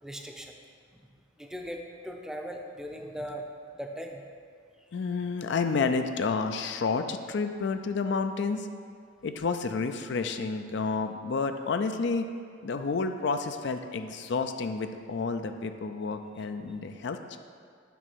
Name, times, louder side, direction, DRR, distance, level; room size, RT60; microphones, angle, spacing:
voice 1, 0.0-0.5 1.4-3.4 3.7-4.2, equal, 5° right, 2 dB, 0.5 m, -39 dB
voice 2, 4.9-8.7 9.2-12.3 12.6-17.4, left 4 dB, 65° left, 8 dB, 0.4 m, -30 dB
9.2 x 3.7 x 6.0 m, 2.2 s
head